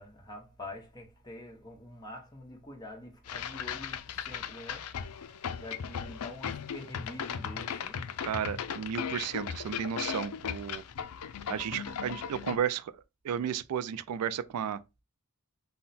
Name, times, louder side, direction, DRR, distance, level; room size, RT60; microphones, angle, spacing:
voice 1, 0.0-8.3, left 1 dB, 20° left, 1.1 m, -46 dB
sound 1, 3.3-12.6, left 7 dB, 75° left, 0.5 m, -37 dB
voice 2, 8.3-10.8 11.5-14.8, right 8 dB, 90° right, 0.4 m, -33 dB
5.6 x 2.2 x 4.1 m
head